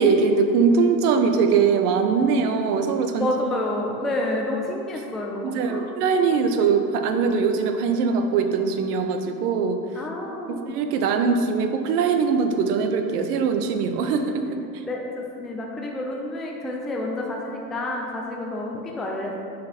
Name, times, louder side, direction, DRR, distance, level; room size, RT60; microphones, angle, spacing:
voice 1, 0.0-3.3 5.4-9.8 10.5-14.6, right 5 dB, 70° right, 6 dB, 0.8 m, -21 dB
voice 2, 3.1-5.9 9.9-10.7 14.6-19.4, left 1 dB, ahead, -1 dB, 0.3 m, -29 dB
6.3 x 4.1 x 4.2 m, 2.5 s
hypercardioid pair, 85°, 49 cm